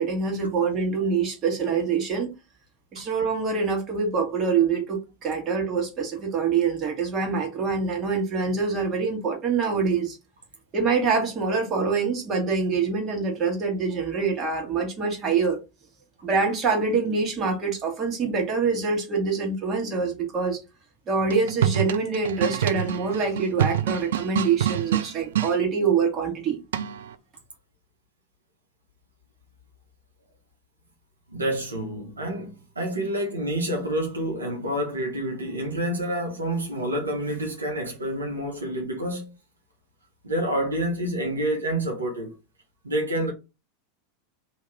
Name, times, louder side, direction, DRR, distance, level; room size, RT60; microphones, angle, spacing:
voice 1, 0.0-2.3 2.9-10.2 10.7-15.6 16.2-20.6 21.1-26.6, right 5 dB, 35° right, 1.5 m, -25 dB
sound 1, 21.2-25.5 26.7-27.1, right 10 dB, 70° right, 0.3 m, -26 dB
voice 2, 31.3-39.3 40.2-42.3 42.8-43.3, right 1 dB, 90° right, 1.0 m, -28 dB
2.9 x 2.8 x 3.4 m
hypercardioid pair, 90°, 0 cm